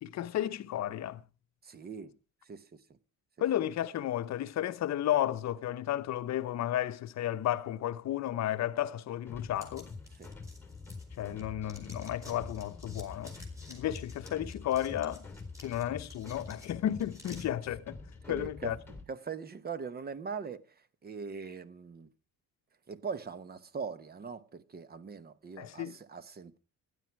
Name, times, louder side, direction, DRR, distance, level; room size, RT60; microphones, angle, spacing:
voice 1, 0.0-1.2 3.4-9.9 11.2-13.4 13.7-15.3 15.6-18.0 18.3-18.8 25.6-25.9, left 12 dB, 50° left, 0.9 m, -33 dB
voice 2, 1.6-2.1 2.4-2.8 10.1-10.3 18.2-18.8 19.1-22.1 22.9-26.6, right 5 dB, 25° right, 1.0 m, -41 dB
sound 1, 9.3-19.0, left 4 dB, 5° left, 3.0 m, -46 dB
sound 2, 9.5-11.4 11.7-17.4, left 1 dB, 10° right, 4.7 m, -54 dB
16.0 x 11.0 x 4.6 m
cardioid pair, 150°, 34 cm